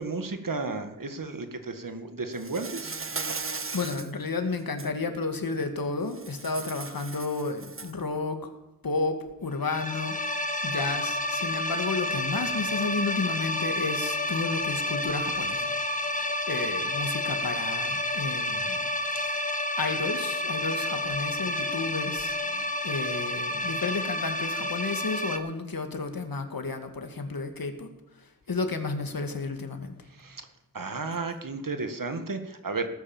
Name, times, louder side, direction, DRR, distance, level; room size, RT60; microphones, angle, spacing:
voice 1, 0.0-2.9 22.5-22.6 30.1-30.5 30.7-32.9, right 3 dB, 65° right, 8 dB, 1.9 m, -33 dB
Insect, 2.4-4.1 4.6-4.9 6.1-8.0, right 4 dB, 35° right, 0.9 m, -37 dB
voice 2, 3.4-8.5 8.8-19.4 19.8-22.4 22.8-30.0 31.1-31.2, left 3 dB, 75° left, 6 dB, 2.1 m, -32 dB
sound 1, 9.6-25.4, left 1 dB, 20° left, 1.6 m, -30 dB
18.5 x 9.6 x 7.3 m, 0.96 s
wide cardioid pair, 75°, 35 cm